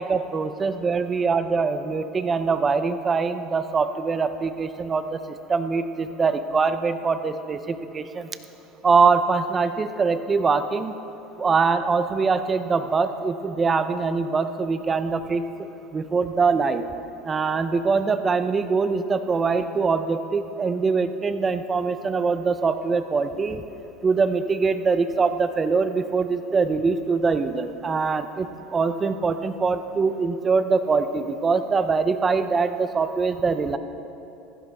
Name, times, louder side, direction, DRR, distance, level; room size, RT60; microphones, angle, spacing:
voice 1, 0.0-5.2 5.5-8.3 8.8-10.9 11.4-15.4 15.9-16.8 17.2-23.6 24.0-33.8, right 4 dB, 20° right, 10 dB, 0.6 m, -23 dB
16.0 x 15.0 x 3.5 m, 2.9 s
supercardioid pair, 130°, 0 cm